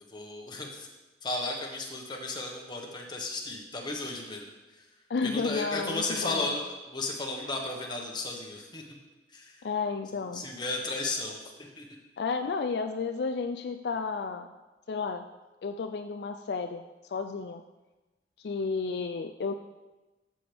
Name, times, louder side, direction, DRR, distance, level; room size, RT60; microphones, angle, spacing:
voice 1, 0.1-0.9 1.2-4.9 5.2-8.8 9.3-9.6 10.3-11.9, left 2 dB, 25° left, 0 dB, 1.3 m, -34 dB
voice 2, 5.1-6.5 9.6-10.4 12.2-14.5 14.9-15.3 15.6-16.8 17.1-17.6 18.4-19.5, left 4 dB, 65° left, 6 dB, 0.4 m, -32 dB
12.5 x 7.7 x 3.5 m, 1.1 s
head